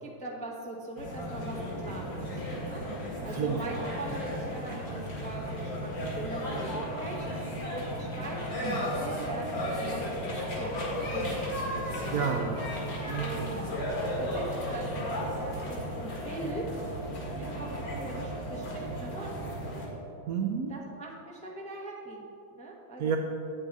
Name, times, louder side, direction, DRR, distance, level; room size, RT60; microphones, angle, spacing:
voice 1, 0.0-11.5 12.0-12.2 13.1-13.8 14.1-14.9 15.4-16.8 17.3-19.5 20.7-23.1, right 1 dB, 10° left, -1 dB, 0.5 m, -41 dB
sound 1, 1.0-19.9, equal, 75° left, 2.7 m, -34 dB
voice 2, 3.2-3.9 8.6-8.8 12.1-12.6 13.1-13.6 20.3-20.8 23.0-23.2, right 7 dB, 65° right, 2 dB, 0.9 m, -31 dB
9.1 x 8.3 x 4.1 m, 2.9 s
omnidirectional pair, 2.0 m